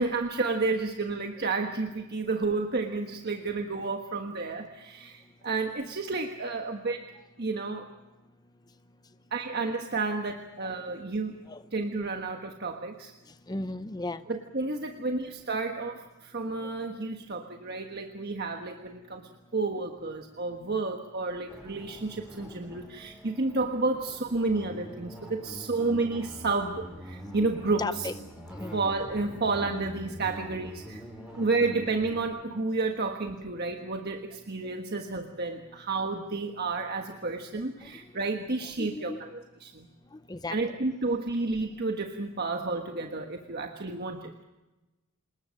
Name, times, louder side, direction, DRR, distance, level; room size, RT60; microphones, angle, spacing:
voice 1, 0.0-7.1 7.4-7.9 9.3-11.4 11.7-13.1 14.3-28.1 28.7-31.0 31.4-39.9 40.5-44.4, right 3 dB, 50° right, 4 dB, 1.4 m, -31 dB
voice 2, 13.5-14.2 20.0-20.1 27.4-27.5 27.8-28.2 28.5-28.8 31.3-31.5 35.1-35.2 37.8-37.9 38.8-39.2 40.1-40.6, left 2 dB, 20° left, 11 dB, 0.7 m, -36 dB
sound 1, 21.5-32.2, equal, 5° right, 7.3 m, -45 dB
27.0 x 21.0 x 6.4 m, 1.1 s
head